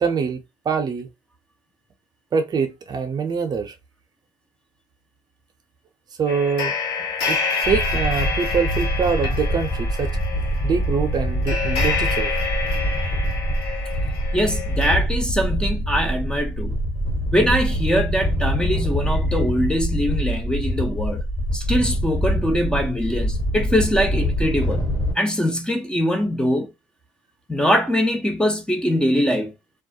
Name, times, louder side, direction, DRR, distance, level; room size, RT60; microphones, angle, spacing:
voice 1, 0.0-1.1 2.3-3.7 6.2-6.7 7.0-7.4 7.7-10.2 10.6-12.4, right 6 dB, 40° right, 0.6 m, -24 dB
sound 1, 6.3-15.0, left 4 dB, 70° left, 1.0 m, -28 dB
sound 2, 7.6-25.1, equal, 45° left, 1.3 m, -24 dB
voice 2, 14.3-16.7 17.3-21.2 21.5-24.8 25.2-26.7 27.5-29.5, equal, 10° left, 0.5 m, -22 dB
2.3 x 2.0 x 2.6 m
supercardioid pair, 80°, 11 cm